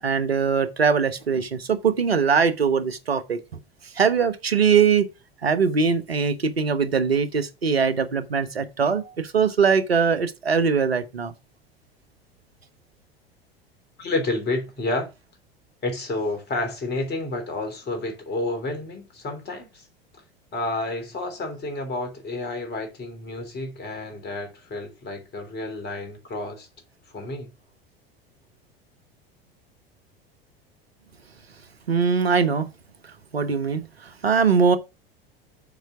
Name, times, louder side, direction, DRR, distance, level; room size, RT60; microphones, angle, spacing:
voice 1, 0.0-3.4 3.9-5.1 5.4-11.3 31.9-32.7 33.3-33.8 34.2-34.8, right 6 dB, 85° right, 0.9 m, -21 dB
voice 2, 14.0-15.1 15.8-19.9 20.5-26.7 27.1-27.5, left 2 dB, 35° left, 3.1 m, -30 dB
7.2 x 4.5 x 5.8 m
figure-of-eight pair, 80°, 30 cm